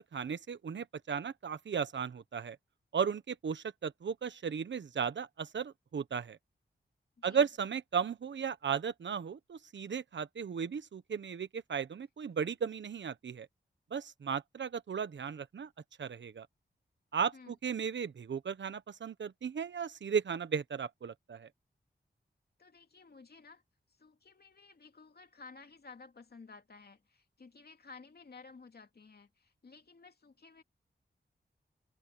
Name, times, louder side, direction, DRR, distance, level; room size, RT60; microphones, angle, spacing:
voice 1, 0.0-2.6 2.9-6.4 7.2-13.5 13.9-15.7 16.0-16.5 17.1-21.5, right 6 dB, 75° right, 1.2 m, -35 dB
voice 2, 22.6-23.6 24.0-30.6, left 4 dB, 60° left, 2.6 m, -54 dB
cardioid pair, 60°, 19 cm